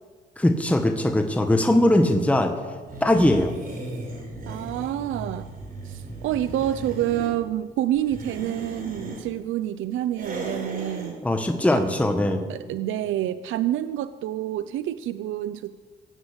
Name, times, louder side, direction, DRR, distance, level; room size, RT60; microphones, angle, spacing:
voice 1, 0.4-2.6 3.0-3.5 11.2-12.4, left 1 dB, 5° left, 5 dB, 1.4 m, -20 dB
sound 1, 2.9-7.3 7.9-9.2 10.1-11.1, right 1 dB, 45° right, 5.4 m, -36 dB
voice 2, 4.5-5.5 5.8-11.2 11.7-11.8 12.5-15.7, right 12 dB, 80° right, 14 dB, 0.5 m, -28 dB
17.0 x 8.0 x 8.0 m, 1.5 s
cardioid pair, 90°, 20 cm